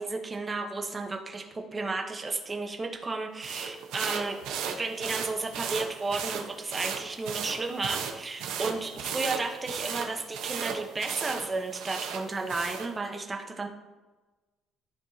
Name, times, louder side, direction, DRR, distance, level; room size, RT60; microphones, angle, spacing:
voice 1, 0.0-13.7, right 3 dB, 20° right, 3 dB, 0.9 m, -33 dB
sound 1, 3.4-12.9, right 7 dB, 85° right, 0.9 m, -36 dB
13.0 x 4.4 x 2.8 m, 1.2 s
cardioid pair, 155°, 0 cm